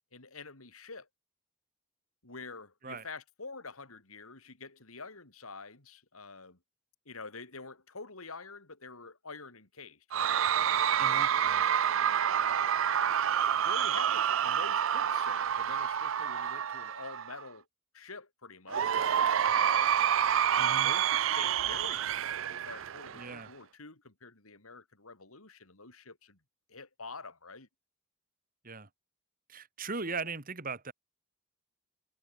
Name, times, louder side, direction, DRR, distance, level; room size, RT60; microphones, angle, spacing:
voice 1, 0.1-1.1 2.2-6.6 7.1-12.7 13.5-17.7 17.9-19.9 20.5-26.4 26.7-27.7 30.0-30.3, left 4 dB, 85° left, 3.8 m, -47 dB
Cheering / Crowd, 10.1-17.4 18.7-23.4, right 9 dB, 65° right, 0.5 m, -28 dB
voice 2, 11.0-11.6 20.6-20.9 23.1-23.5 28.6-28.9 29.5-30.9, right 4 dB, 40° right, 2.3 m, -39 dB
head